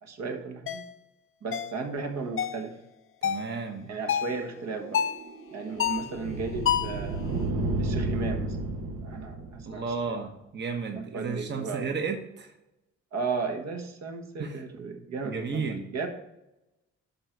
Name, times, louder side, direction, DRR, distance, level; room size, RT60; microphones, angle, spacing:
voice 1, 0.0-0.8 1.4-2.8 3.9-5.0 5.5-7.2 7.8-9.8 10.1-10.2 10.9-11.9 13.1-16.1, right 4 dB, 60° right, 4 dB, 1.4 m, -35 dB
sound 1, 0.7-0.8 1.5-1.8 2.4-2.6 3.2-3.5 4.1-4.4 4.9-5.2 5.8-6.1 6.6-7.0, left 9 dB, 45° left, 0.6 m, -28 dB
voice 2, 3.2-3.9 9.6-12.6 14.4-14.6 15.2-15.9, right 5 dB, 35° right, 3 dB, 1.0 m, -33 dB
sound 2, 4.4-10.0, right 2 dB, 75° right, 1.2 m, -32 dB
11.0 x 4.0 x 4.6 m, 0.92 s
cardioid pair, 90°, 30 cm